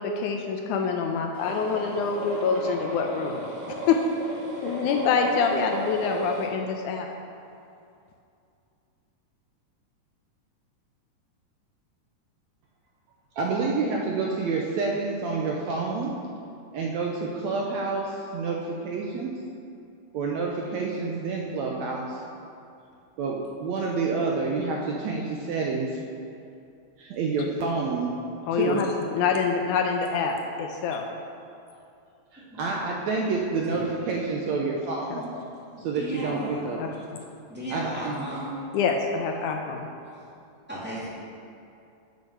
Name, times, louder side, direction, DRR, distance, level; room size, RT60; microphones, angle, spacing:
voice 1, 0.0-4.0 4.6-7.1 28.5-31.1 35.3-35.4 36.8-37.2 38.7-39.9, left 5 dB, 75° left, 3 dB, 2.0 m, -26 dB
sound 1, 1.3-6.5, equal, 45° right, 1.6 m, -34 dB
voice 2, 13.4-16.1 16.7-19.3 20.1-22.2 23.2-26.0 27.0-28.1 28.6-28.8 32.3-35.3 35.8-36.8 37.7-38.3, right 4 dB, 75° right, -1 dB, 1.8 m, -28 dB
voice 3, 32.5-32.8 33.7-33.9 35.9-36.7 37.5-38.6 40.7-41.1, right 1 dB, 5° right, -9 dB, 1.8 m, -35 dB
8.4 x 6.6 x 6.5 m, 2.6 s
omnidirectional pair, 3.8 m